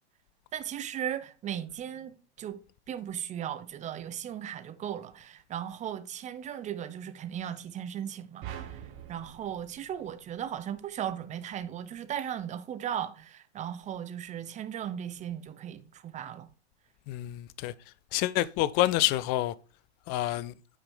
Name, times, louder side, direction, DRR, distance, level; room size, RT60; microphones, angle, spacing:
voice 1, 0.5-2.6 2.9-8.8 9.1-16.5, right 10 dB, 20° right, 0.8 m, -37 dB
sound 1, 8.4-10.8, right 10 dB, 40° right, 1.4 m, -44 dB
voice 2, 17.1-17.7 18.1-19.5 20.1-20.5, left 15 dB, 30° left, 0.4 m, -27 dB
9.1 x 4.9 x 3.7 m
hypercardioid pair, 115°, 34 cm